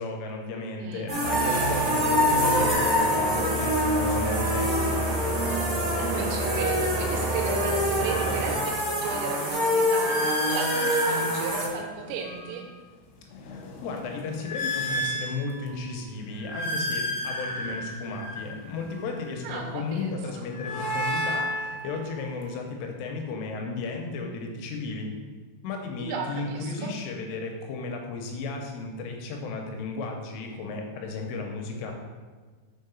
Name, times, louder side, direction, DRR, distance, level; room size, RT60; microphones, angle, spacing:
voice 1, 0.0-5.0 13.3-25.1 25.6-31.9, left 3 dB, 85° left, 2 dB, 3.2 m, -34 dB
voice 2, 0.8-1.2 6.0-12.6 19.4-20.5 26.0-26.9, right 5 dB, 85° right, 2 dB, 3.7 m, -35 dB
sound 1, 1.1-11.7, left 1 dB, 40° right, 1.0 m, -26 dB
sound 2, 1.2-8.6, right 2 dB, 60° right, 2.6 m, -30 dB
sound 3, 4.3-4.5 6.2-7.4 7.8-12.7 13.2-15.9 16.3-19.3 20.3-22.5, equal, 70° left, 2.8 m, -33 dB
6.2 x 5.6 x 5.3 m, 1.4 s
omnidirectional pair, 5.9 m